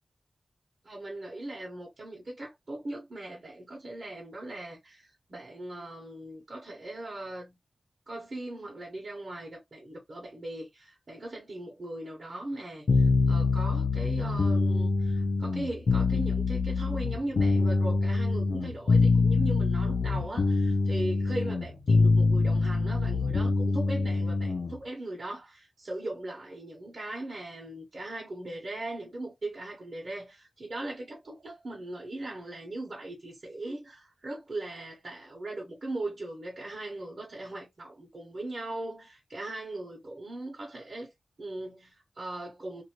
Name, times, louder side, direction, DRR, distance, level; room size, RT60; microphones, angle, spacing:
voice 1, 0.8-7.6 8.1-41.1 41.4-42.8, right 2 dB, 55° right, 1.2 m, -39 dB
sound 1, 12.9-24.8, left 3 dB, 75° left, 0.7 m, -25 dB
2.7 x 2.6 x 3.0 m
cardioid pair, 45°, 0 cm